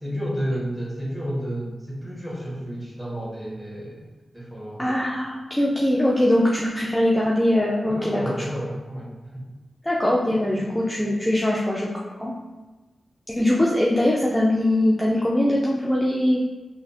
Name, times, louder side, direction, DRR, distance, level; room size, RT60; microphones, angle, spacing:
voice 1, 0.0-4.0 4.3-4.8 7.9-9.4, equal, 15° right, -6 dB, 1.3 m, -31 dB
voice 2, 4.8-8.2 9.8-11.9 12.2-12.3 13.3-16.4, left 1 dB, 10° left, -4 dB, 0.4 m, -21 dB
3.2 x 2.1 x 2.6 m, 1.2 s
cardioid pair, 45°, 0 cm